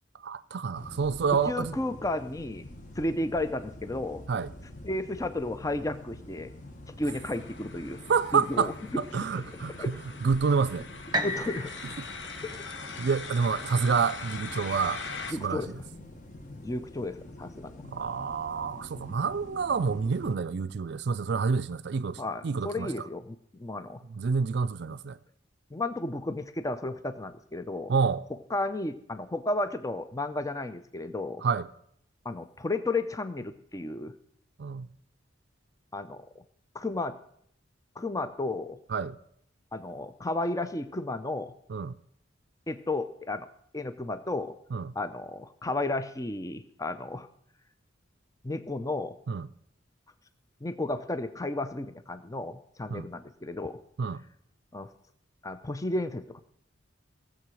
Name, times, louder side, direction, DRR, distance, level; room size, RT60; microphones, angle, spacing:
voice 1, 0.2-1.8 4.3-4.5 8.1-10.8 13.0-15.0 15.4-15.6 17.9-22.9 24.2-25.2 27.9-28.2 31.4-31.7 34.6-34.9 38.9-39.2 41.7-41.9 44.7-44.9 49.3-49.5 52.9-53.1 54.0-54.2, right 5 dB, 60° right, 0.4 m, -28 dB
sound 1, 0.7-20.4, left 1 dB, 40° left, 1.3 m, -46 dB
voice 2, 1.5-2.7 3.0-4.2 4.8-6.5 7.0-8.0 8.3-9.0 9.8-9.9 11.2-11.7 15.3-15.7 16.5-17.7 22.2-24.0 25.7-27.9 28.5-31.4 32.2-34.1 35.9-36.3 36.7-37.2 38.0-38.8 39.7-41.5 42.7-43.5 43.7-44.5 45.0-47.3 48.4-49.1 50.6-53.8 54.7-54.9 55.4-56.4, left 2 dB, 15° left, 0.5 m, -33 dB
sound 2, 7.0-15.3, left 4 dB, 65° left, 1.1 m, -42 dB
sound 3, 11.1-15.1 15.6-15.7, equal, 20° right, 0.9 m, -36 dB
16.5 x 7.6 x 6.2 m
head